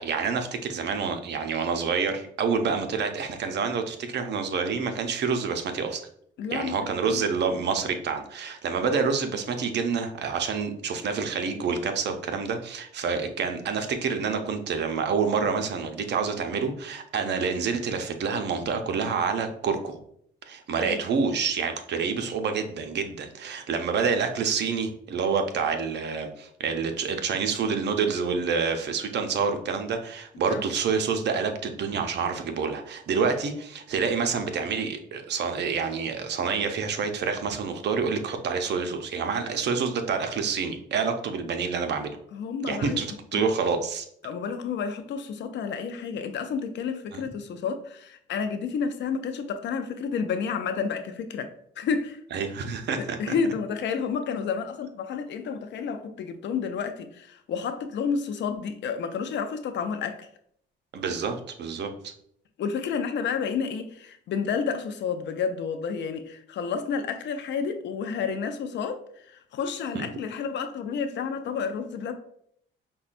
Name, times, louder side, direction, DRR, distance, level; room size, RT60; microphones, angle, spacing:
voice 1, 0.0-6.0 6.5-20.0 20.5-42.2 42.7-44.1 47.1-47.2 52.3-53.2 60.9-62.1 69.9-70.1, right 5 dB, 60° right, 0.6 m, -28 dB
voice 2, 6.4-7.3 20.8-21.0 30.5-30.6 42.3-43.0 43.3-43.5 44.2-51.5 51.8-52.2 53.0-60.3 62.6-69.0 69.3-72.1, left 6 dB, 65° left, 0.5 m, -30 dB
5.3 x 2.2 x 2.5 m
cardioid pair, 90°, 20 cm